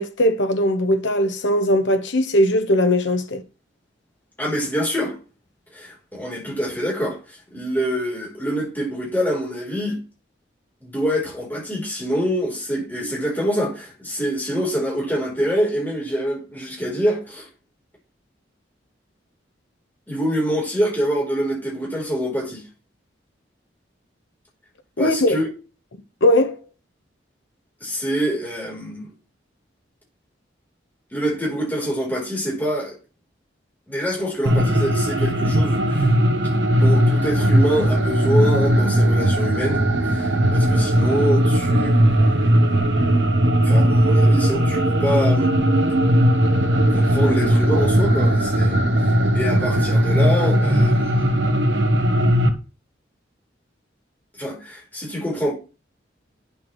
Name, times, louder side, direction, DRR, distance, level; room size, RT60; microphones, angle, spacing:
voice 1, 0.0-3.4 25.0-25.4 26.2-26.6, left 1 dB, 85° left, 1.1 m, -19 dB
voice 2, 4.4-5.1 5.7-10.0 10.8-17.5 20.1-22.6 25.0-25.5 27.8-29.1 31.1-33.0 33.9-36.1 36.7-45.5 46.9-51.4 54.4-55.5, equal, 10° left, 3.6 m, -25 dB
sound 1, 34.5-52.5, equal, 80° right, 1.1 m, -18 dB
9.1 x 6.9 x 3.1 m
head